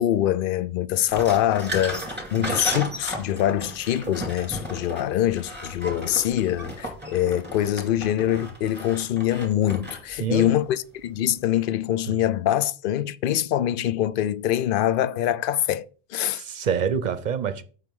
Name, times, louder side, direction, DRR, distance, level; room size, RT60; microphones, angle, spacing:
voice 1, 0.0-16.4, left 12 dB, 65° left, 0.7 m, -24 dB
sound 1, 1.1-10.6, equal, 10° right, 2.4 m, -34 dB
voice 2, 10.2-10.6 12.1-12.2 16.3-17.6, right 7 dB, 50° right, 0.8 m, -27 dB
7.7 x 6.3 x 5.4 m
omnidirectional pair, 1.0 m